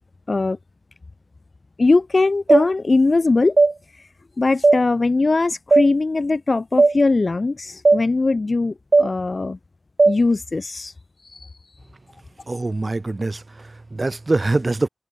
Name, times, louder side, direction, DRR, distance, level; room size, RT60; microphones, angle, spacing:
voice 1, 0.3-0.6 1.8-3.6 4.4-9.6 10.1-10.9 11.3-11.5, left 3 dB, 60° left, 2.9 m, -20 dB
sound 1, 2.5-2.7 3.6-3.7 4.6-4.8 5.7-5.9 6.8-6.9 7.9-8.0 8.9-9.1 10.0-10.2, right 3 dB, 65° right, 3.3 m, -14 dB
voice 2, 12.5-14.9, right 2 dB, 50° right, 2.5 m, -24 dB
cardioid pair, 45°, 0 cm